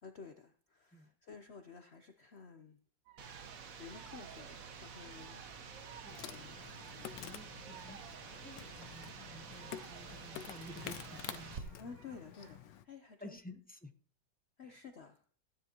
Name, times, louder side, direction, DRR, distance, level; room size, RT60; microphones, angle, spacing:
voice 1, 0.0-2.8 3.8-6.0 6.3-6.6 11.8-13.4 14.6-15.2, left 5 dB, 50° left, 7 dB, 0.8 m, -53 dB
sound 1, 3.1-12.7, right 9 dB, 85° right, 1.5 m, -59 dB
sound 2, 3.2-11.6, right 6 dB, 55° right, 1.4 m, -50 dB
voice 2, 6.0-6.4 6.8-8.0 8.3-11.8 13.2-13.9 14.6-14.7, equal, 10° left, 6 dB, 0.5 m, -53 dB
Insect, 6.1-12.8, left 11 dB, 80° left, 1.3 m, -49 dB
15.5 x 10.5 x 3.0 m, 0.43 s
omnidirectional pair, 1.9 m